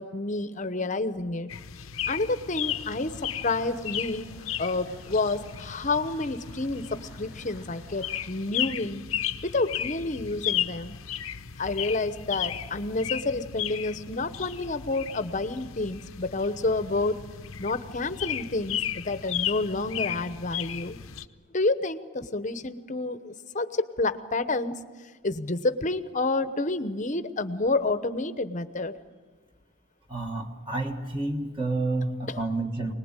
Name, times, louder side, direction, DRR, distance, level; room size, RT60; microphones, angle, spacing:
voice 1, 0.0-1.5 2.1-3.2 3.4-4.3 4.6-9.0 9.4-11.0 11.6-17.2 17.6-21.0 21.5-24.8 25.2-28.9 32.3-32.4, left 2 dB, 35° left, 12 dB, 0.9 m, -29 dB
sound 1, 1.5-21.2, left 10 dB, 85° left, 0.9 m, -35 dB
sound 2, 2.1-8.3, equal, 85° right, 5.6 m, -55 dB
voice 2, 30.1-32.9, right 2 dB, 25° right, 2 dB, 1.6 m, -29 dB
25.0 x 20.0 x 9.0 m, 1.4 s
head